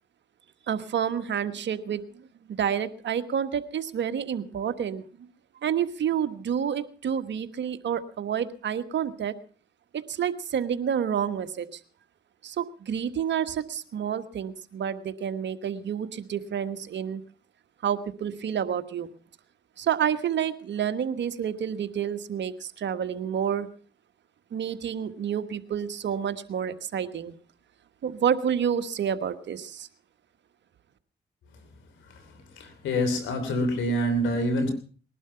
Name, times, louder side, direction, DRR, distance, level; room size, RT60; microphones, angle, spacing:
voice 1, 0.7-2.0 2.5-5.0 5.6-9.3 9.9-11.8 12.4-17.2 17.8-19.1 19.8-23.7 24.5-27.3 28.0-29.9, right 8 dB, 70° right, 10 dB, 1.4 m, -29 dB
voice 2, 32.6-34.7, equal, 90° left, 10 dB, 3.2 m, -26 dB
20.5 x 11.5 x 5.7 m, 0.42 s
supercardioid pair, 55°, 19 cm